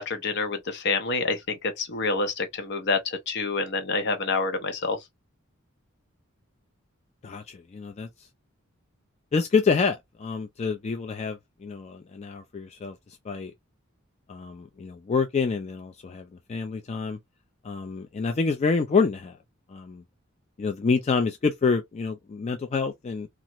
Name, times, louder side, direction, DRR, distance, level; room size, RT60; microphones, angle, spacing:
voice 1, 0.0-5.0, left 3 dB, 60° left, 0.7 m, -27 dB
voice 2, 7.2-8.1 9.3-13.5 14.3-17.2 17.6-19.4 19.7-20.0 20.6-23.3, left 5 dB, 35° left, 0.3 m, -27 dB
2.8 x 2.4 x 2.9 m
head